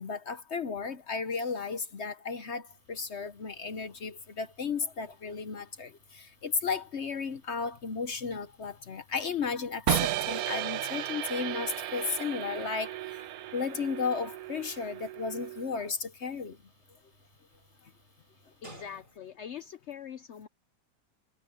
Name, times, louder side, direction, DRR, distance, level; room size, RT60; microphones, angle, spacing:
voice 1, 0.0-12.9 13.5-16.6, left 5 dB, 50° left, 0.9 m, -34 dB
sound 1, 2.7-19.5, right 1 dB, 25° right, 7.3 m, -61 dB
sound 2, 9.9-15.8, right 13 dB, 65° right, 1.0 m, -34 dB
voice 2, 18.6-20.5, left 8 dB, 85° left, 0.6 m, -43 dB
omnidirectional pair, 2.0 m